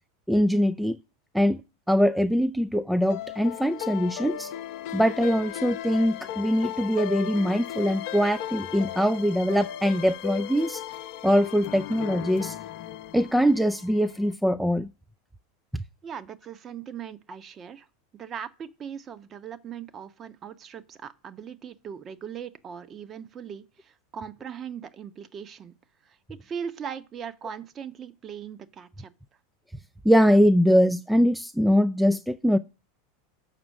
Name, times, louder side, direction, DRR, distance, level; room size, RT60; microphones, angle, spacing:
voice 1, 0.3-1.0 1.3-1.6 1.9-4.5 4.9-10.8 11.2-12.6 13.1-14.9 15.7-15.8 30.0-32.6, equal, ahead, 0.4 m, -22 dB
sound 1, 3.1-14.3, left 11 dB, 50° left, 0.7 m, -36 dB
voice 2, 16.0-17.9 18.1-25.7 26.0-29.1, right 7 dB, 30° right, 0.9 m, -39 dB
6.7 x 6.0 x 7.4 m
figure-of-eight pair, 85°, 0 cm